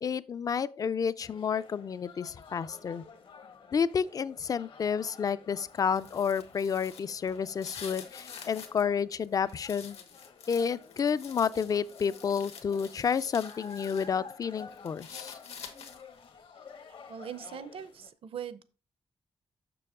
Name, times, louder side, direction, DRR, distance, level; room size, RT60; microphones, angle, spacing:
voice 1, 0.0-3.0 3.7-10.0 10.5-15.4, left 6 dB, 35° left, 0.3 m, -30 dB
sound 1, 1.2-18.1, left 5 dB, 55° left, 0.9 m, -52 dB
sound 2, 5.7-8.8 9.2-14.1 14.4-16.2, left 6 dB, 80° left, 1.3 m, -48 dB
voice 2, 17.1-18.6, right 8 dB, 65° right, 0.6 m, -41 dB
6.8 x 6.3 x 3.6 m
wide cardioid pair, 145°, 10 cm